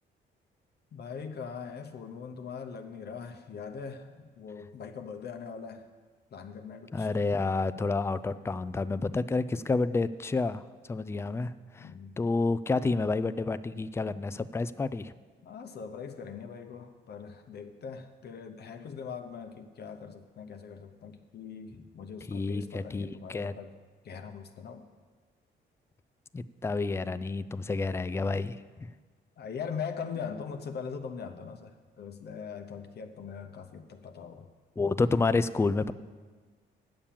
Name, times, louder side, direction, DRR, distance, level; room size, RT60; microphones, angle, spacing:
voice 1, 0.9-5.9 6.3-7.4 11.8-12.1 15.4-23.7 24.0-24.8 29.4-34.4, left 6 dB, 55° left, 5 dB, 0.8 m, -41 dB
voice 2, 6.9-10.6 10.9-11.9 12.2-15.1 22.3-23.5 26.3-28.9 34.8-35.9, left 3 dB, 15° left, 14 dB, 0.3 m, -29 dB
8.7 x 6.9 x 7.4 m, 1.5 s
cardioid pair, 90°, 20 cm